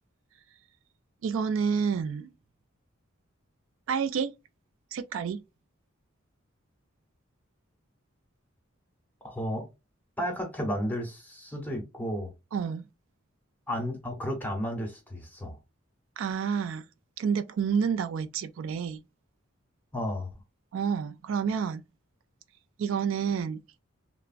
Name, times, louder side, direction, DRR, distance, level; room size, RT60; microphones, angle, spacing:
voice 1, 1.2-2.3 3.9-4.3 4.9-5.4 12.5-12.9 16.2-16.8 17.2-19.0 20.7-21.8 22.8-23.6, right 6 dB, 80° right, 0.3 m, -29 dB
voice 2, 9.2-9.7 10.2-12.3 13.7-15.6 19.9-20.3, equal, 10° left, 0.8 m, -33 dB
3.3 x 2.0 x 2.4 m
head